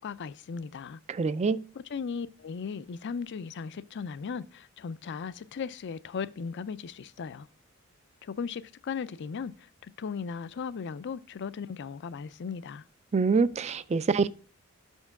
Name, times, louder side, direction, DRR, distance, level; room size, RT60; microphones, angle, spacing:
voice 1, 0.0-1.0 1.9-7.5 8.2-9.5 9.8-12.8, left 6 dB, 55° left, 0.4 m, -37 dB
voice 2, 1.1-1.6 13.1-14.3, right 4 dB, 30° right, 0.4 m, -25 dB
6.0 x 4.5 x 5.7 m
head